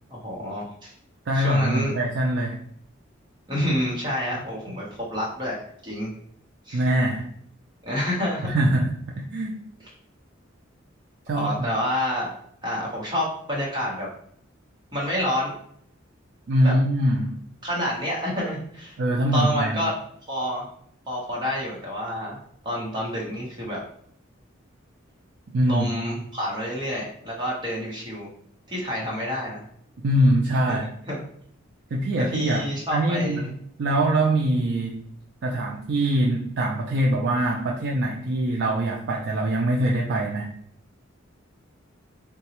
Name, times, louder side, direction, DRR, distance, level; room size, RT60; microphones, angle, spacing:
voice 1, 0.1-0.9 1.3-1.9 3.5-5.6 5.8-6.1 6.7-6.8 7.8-8.5 9.8-9.9 11.3-12.3 12.6-14.1 14.9-15.5 16.6-16.7 17.6-19.0 19.3-19.9 20.3-20.7 21.1-22.4 22.6-23.8 25.7-28.3 28.7-29.6 30.7-30.8 31.1-31.3 32.2-33.5, equal, 20° right, -4 dB, 0.9 m, -28 dB
voice 2, 1.3-2.6 6.7-7.3 8.4-9.6 11.3-11.7 16.5-17.4 19.0-19.8 25.5-25.9 30.0-30.9 31.9-35.1 35.4-40.5, right 1 dB, 60° right, -1 dB, 0.4 m, -23 dB
3.8 x 2.3 x 2.9 m, 0.66 s
head